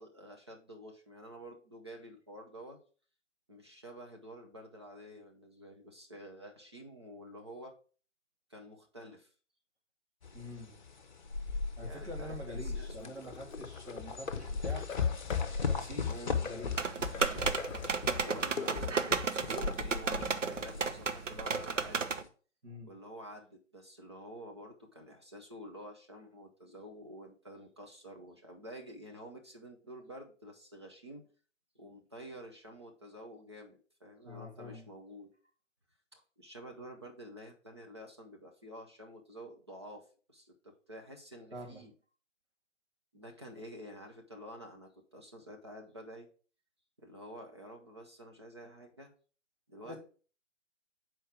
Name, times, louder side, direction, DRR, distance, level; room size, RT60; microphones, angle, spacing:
voice 1, 0.0-2.8 3.5-7.8 8.5-9.3 11.8-13.4 16.1-16.3 17.8-22.1 22.8-31.2 31.7-35.3 36.1-41.9 43.1-46.3 47.0-49.1 49.7-49.9, equal, 20° right, 1 dB, 0.6 m, -50 dB
sound 1, 10.2-22.3, left 5 dB, 40° left, 0.8 m, -38 dB
voice 2, 10.3-10.7 11.8-14.9 15.6-16.9 22.6-22.9 34.2-34.8 41.5-41.8 49.9-50.0, left 1 dB, 60° right, -2 dB, 3.1 m, -45 dB
sound 2, 12.7-20.6, left 5 dB, 90° left, 0.6 m, -46 dB
sound 3, 16.8-22.2, right 5 dB, 75° right, 0.7 m, -33 dB
6.3 x 4.5 x 4.7 m, 0.40 s
figure-of-eight pair, 145°, 37 cm